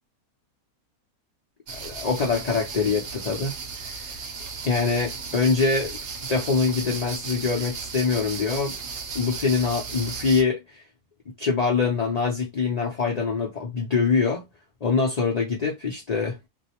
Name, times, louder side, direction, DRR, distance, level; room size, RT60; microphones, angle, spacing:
voice 1, 1.7-4.2 4.6-6.0 6.3-8.8 9.1-10.8 11.4-14.4 14.8-16.4, left 4 dB, 55° left, 0.4 m, -24 dB
sound 1, 1.7-10.4, right 5 dB, 55° right, 0.8 m, -35 dB
2.5 x 2.0 x 2.8 m
omnidirectional pair, 1.5 m